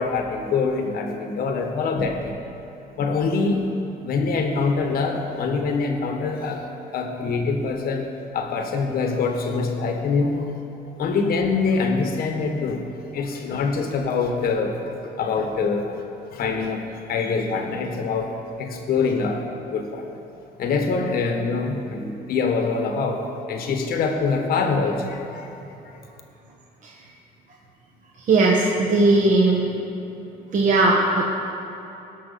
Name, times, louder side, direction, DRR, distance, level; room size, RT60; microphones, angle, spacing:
voice 1, 0.0-2.4 3.0-3.7 4.0-10.5 11.0-12.8 13.1-16.0 16.3-18.3 18.6-19.4 19.7-20.0 20.6-23.2 23.5-25.5 25.8-25.9, left 4 dB, 65° left, 4 dB, 1.3 m, -24 dB
voice 2, 28.2-29.7 30.5-31.2, right 2 dB, 50° right, -3 dB, 1.3 m, -18 dB
18.0 x 6.2 x 4.2 m, 2.9 s
cardioid pair, 110°, 17 cm